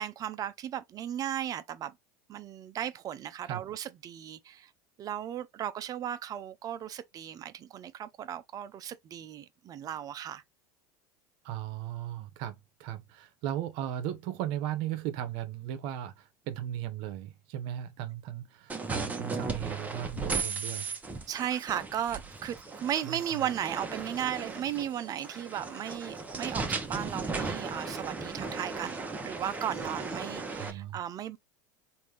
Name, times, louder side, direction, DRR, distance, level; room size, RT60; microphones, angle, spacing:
voice 1, 0.0-1.9 2.3-4.7 5.0-10.4 21.3-31.4, right 10 dB, 35° right, 0.5 m, -36 dB
voice 2, 11.4-20.9 23.0-23.2 30.5-31.0, right 11 dB, 65° right, 0.8 m, -37 dB
sound 1, 18.7-30.7, right 4 dB, 15° right, 0.9 m, -36 dB
3.3 x 2.6 x 3.2 m
supercardioid pair, 110°, 10 cm